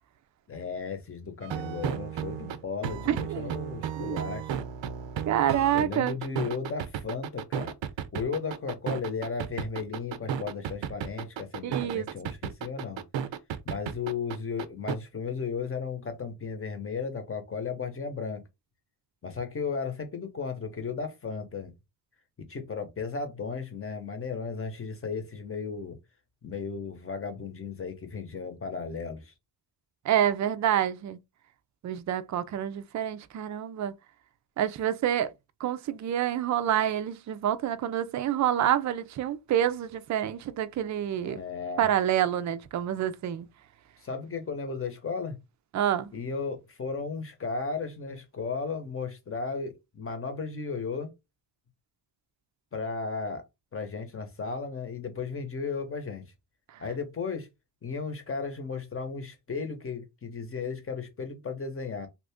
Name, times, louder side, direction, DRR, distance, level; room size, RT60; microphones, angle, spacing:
voice 1, 0.5-4.5 5.7-7.7 8.1-13.0 13.6-18.4 19.2-21.7 22.5-26.0 26.4-29.3 41.2-41.9 44.0-45.4 46.1-51.1 52.7-53.5 53.7-56.2 56.8-57.5 57.8-62.1, left 5 dB, 30° left, 0.9 m, -35 dB
sound 1, 1.4-15.0, right 9 dB, 90° right, 0.6 m, -33 dB
voice 2, 3.1-3.5 4.0-4.2 5.3-6.2 11.6-12.1 30.0-31.2 31.8-33.9 34.6-35.3 35.6-41.4 41.8-43.5 45.7-46.1, right 10 dB, 45° right, 0.4 m, -27 dB
2.8 x 2.5 x 3.4 m
cardioid pair, 120°, 44 cm